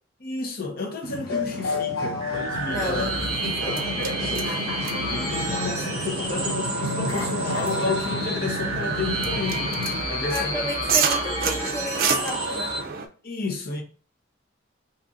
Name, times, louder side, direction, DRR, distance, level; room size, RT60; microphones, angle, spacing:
voice 1, 0.2-3.1 4.0-4.6 5.1-9.7 10.1-11.3 13.2-13.8, left 3 dB, 50° left, 0.8 m, -32 dB
sound 1, 1.0-10.0, left 3 dB, 80° left, 0.8 m, -31 dB
sound 2, 2.1-12.8, right 1 dB, 25° right, 1.1 m, -30 dB
voice 2, 2.6-3.1 3.4-3.8 10.3-12.7, left 1 dB, 15° left, 0.8 m, -31 dB
sound 3, 2.8-13.1, right 6 dB, 50° right, 0.4 m, -31 dB
2.9 x 2.5 x 3.7 m
head